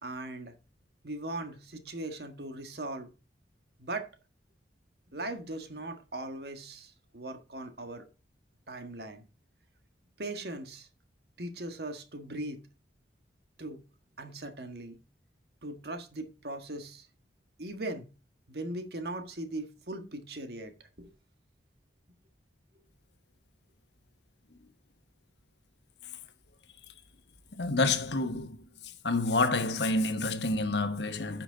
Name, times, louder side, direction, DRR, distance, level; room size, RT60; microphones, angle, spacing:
voice 1, 0.0-0.5 1.0-3.1 3.8-4.1 5.1-8.0 8.7-9.2 10.2-10.9 11.4-12.6 13.6-13.8 14.2-15.0 15.6-17.1 17.6-18.1 18.5-20.7 21.0-21.1, right 2 dB, 65° right, 1.5 m, -39 dB
voice 2, 27.5-28.6 29.0-31.4, left 2 dB, 75° left, 1.2 m, -28 dB
10.0 x 6.1 x 3.9 m
head